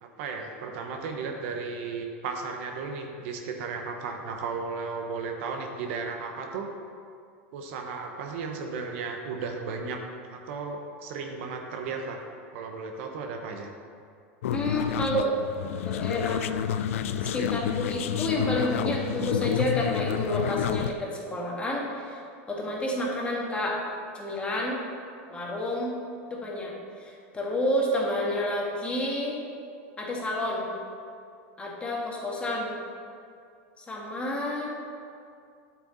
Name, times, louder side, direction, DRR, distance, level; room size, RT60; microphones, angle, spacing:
voice 1, 0.0-6.7 7.5-10.0 10.3-12.2 12.5-13.7, right 4 dB, 65° right, 3 dB, 1.0 m, -35 dB
sound 1, 14.4-20.9, left 9 dB, 85° left, 0.4 m, -29 dB
voice 2, 14.5-15.3 15.8-16.5 17.1-22.2 22.5-23.8 24.1-24.8 25.3-26.0 26.3-26.7 27.0-29.4 30.0-30.7 31.6-32.7 33.8-34.7, left 1 dB, 15° left, -3 dB, 1.7 m, -29 dB
8.8 x 5.9 x 4.0 m, 2.3 s
supercardioid pair, 125°, 7 cm